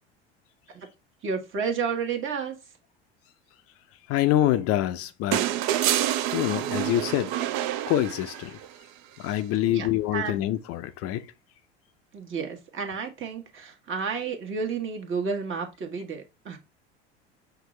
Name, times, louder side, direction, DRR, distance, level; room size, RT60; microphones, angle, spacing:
voice 1, 1.2-2.6 9.6-10.4 12.1-16.6, right 5 dB, 40° right, 1.2 m, -31 dB
voice 2, 4.1-5.4 6.3-7.4 7.9-8.6 9.2-11.3, left 13 dB, 45° left, 0.4 m, -25 dB
sound 1, 5.3-8.7 10.2-10.3, right 12 dB, 55° right, 0.5 m, -27 dB
5.7 x 2.5 x 3.1 m
hypercardioid pair, 75°, 32 cm